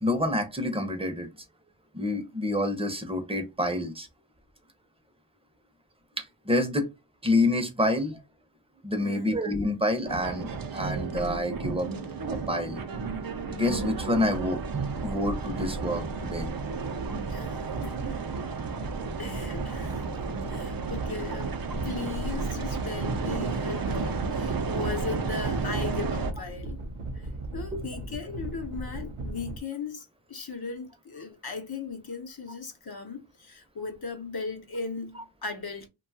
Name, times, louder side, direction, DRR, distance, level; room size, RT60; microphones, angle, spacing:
voice 1, 0.0-1.3 1.9-4.1 6.2-6.9 7.2-8.2 8.8-11.9 12.5-12.8 13.5-14.6 15.0-16.5 27.7-27.8, left 1 dB, 10° right, 0.7 m, -27 dB
voice 2, 9.0-9.4 17.3-18.0 19.2-20.1 20.5-21.5 21.8-26.8 27.1-27.3 27.5-35.9, left 4 dB, 50° left, 0.8 m, -37 dB
sound 1, 10.0-26.3, right 5 dB, 50° right, 0.5 m, -32 dB
sound 2, 13.6-29.6, right 1 dB, 85° right, 0.7 m, -38 dB
2.7 x 2.3 x 2.7 m
wide cardioid pair, 60°, 48 cm